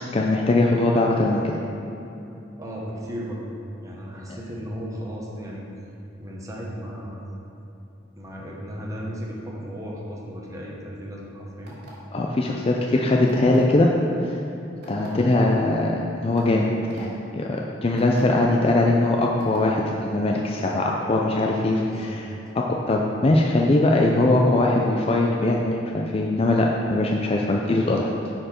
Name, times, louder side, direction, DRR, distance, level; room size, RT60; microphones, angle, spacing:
voice 1, 0.1-1.5 12.1-13.9 14.2-14.4 14.9-16.7 17.0-22.3 22.6-28.1, left 2 dB, 30° left, -1 dB, 0.4 m, -21 dB
voice 2, 2.6-3.4 3.8-5.7 6.2-7.3 8.2-11.8 15.0-15.3 21.8-22.2, equal, 20° right, -4 dB, 1.1 m, -35 dB
sound 1, 11.6-12.1 13.3-13.7 14.8-15.1 15.8-15.9 16.4-16.5 16.9-17.0 18.0-18.2 19.4-19.6, right 1 dB, 60° right, 1.8 m, -47 dB
10.0 x 4.4 x 4.4 m, 2.8 s
head